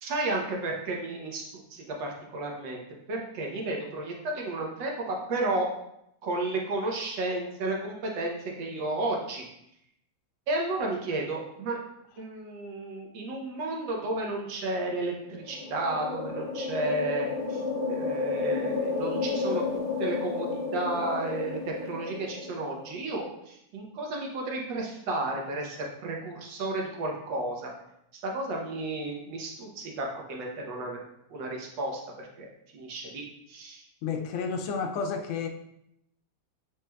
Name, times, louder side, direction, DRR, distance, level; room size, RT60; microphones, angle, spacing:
voice 1, 0.0-1.4 1.7-2.8 3.1-5.7 6.2-9.4 10.5-11.8 12.2-19.6 20.0-27.7 28.2-31.0 31.3-33.8, right 2 dB, 70° right, 1.5 m, -32 dB
sound 1, 15.2-22.9, left 3 dB, 55° left, 0.4 m, -32 dB
voice 2, 34.0-35.5, left 5 dB, 80° left, 1.3 m, -31 dB
7.3 x 3.1 x 2.2 m
omnidirectional pair, 2.1 m